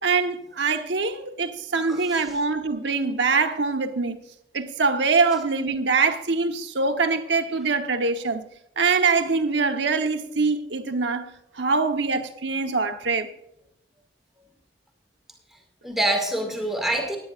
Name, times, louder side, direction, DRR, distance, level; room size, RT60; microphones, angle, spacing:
voice 1, 0.0-4.2 4.5-8.5 8.8-11.3 11.5-13.3, right 4 dB, 80° right, 1.1 m, -23 dB
voice 2, 1.9-2.4 15.8-17.2, right 1 dB, ahead, 2.2 m, -26 dB
20.0 x 9.6 x 2.5 m
head